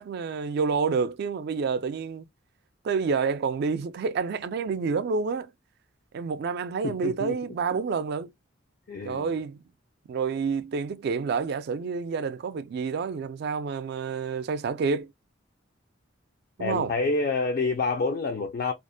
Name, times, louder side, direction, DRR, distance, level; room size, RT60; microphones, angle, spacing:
voice 1, 0.0-2.2 2.8-5.5 6.1-8.3 9.0-9.6 10.1-15.1 16.6-16.9, right 5 dB, 55° right, 0.3 m, -28 dB
voice 2, 6.8-7.4 8.9-9.4 16.6-18.7, left 3 dB, 45° left, 0.3 m, -28 dB
2.4 x 2.0 x 2.5 m
head